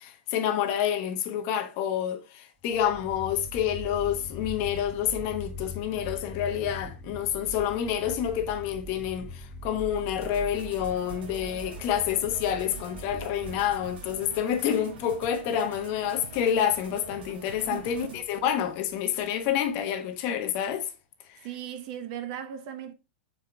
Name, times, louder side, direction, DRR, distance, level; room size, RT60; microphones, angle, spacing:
voice 1, 0.0-20.9 21.3-21.4, left 9 dB, 35° left, 1.1 m, -28 dB
sound 1, 2.7-19.7, equal, ahead, 0.5 m, -42 dB
sound 2, 10.2-18.2, right 5 dB, 70° right, 1.8 m, -46 dB
voice 2, 17.7-18.1 21.4-22.9, right 10 dB, 40° right, 0.8 m, -37 dB
6.6 x 4.9 x 3.4 m
supercardioid pair, 165°, 6 cm